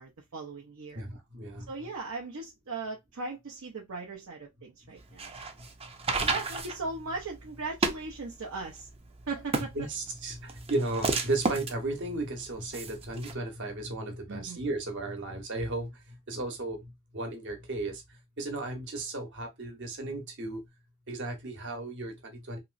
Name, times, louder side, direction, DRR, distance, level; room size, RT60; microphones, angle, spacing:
voice 1, 0.0-1.0 1.7-5.3 6.1-8.9 9.3-9.9 14.3-14.6, right 3 dB, 75° right, 0.6 m, -38 dB
voice 2, 0.9-1.7 5.6-5.7 9.8-18.0 18.4-20.6 21.1-22.6, right 2 dB, 60° right, 1.0 m, -35 dB
sound 1, 5.0-13.3, right 3 dB, 25° right, 0.5 m, -33 dB
2.9 x 2.9 x 2.5 m
head